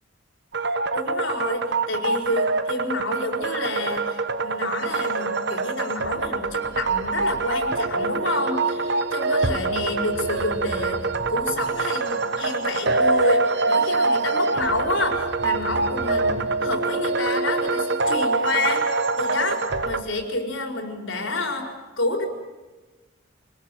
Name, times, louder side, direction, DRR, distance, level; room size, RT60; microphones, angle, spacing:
sound 1, 0.5-20.0, right 3 dB, 55° right, 1.2 m, -25 dB
voice 1, 0.9-11.0 11.3-21.7 22.0-22.3, left 2 dB, 75° left, 4 dB, 4.8 m, -29 dB
27.0 x 20.5 x 9.2 m, 1.2 s
head